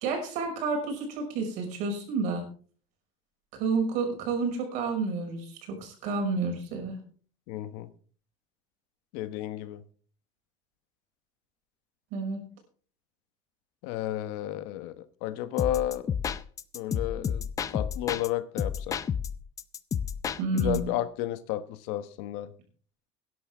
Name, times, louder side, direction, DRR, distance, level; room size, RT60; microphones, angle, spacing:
voice 1, 0.0-2.5 3.5-7.0 12.1-12.4 20.4-20.9, right 4 dB, 65° right, 3 dB, 5.6 m, -30 dB
voice 2, 7.5-7.9 9.1-9.8 13.8-16.1 16.7-17.5 17.7-19.0 20.5-22.5, left 13 dB, 85° left, 13 dB, 1.1 m, -32 dB
sound 1, 15.6-18.3 18.6-20.9, left 7 dB, 25° left, 0.5 m, -31 dB
19.5 x 11.0 x 3.6 m, 0.44 s
cardioid pair, 155°, 13 cm